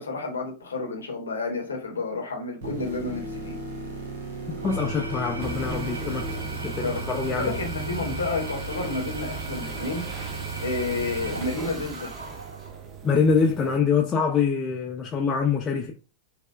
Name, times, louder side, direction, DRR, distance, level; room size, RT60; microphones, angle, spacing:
voice 1, 0.0-3.6 6.8-10.1 10.6-12.1, left 3 dB, 75° left, 0.8 m, -31 dB
sound 1, 2.6-7.7 11.7-11.8, right 1 dB, 55° right, 1.0 m, -37 dB
Engine / Tools, 4.5-12.8, right 4 dB, 80° right, 0.3 m, -36 dB
voice 2, 4.6-6.3 6.6-7.6 13.0-15.9, left 5 dB, 25° left, 0.4 m, -24 dB
sound 2, 5.4-13.8, right 3 dB, 25° right, 0.6 m, -37 dB
4.2 x 2.1 x 2.3 m
figure-of-eight pair, 90°, 0 cm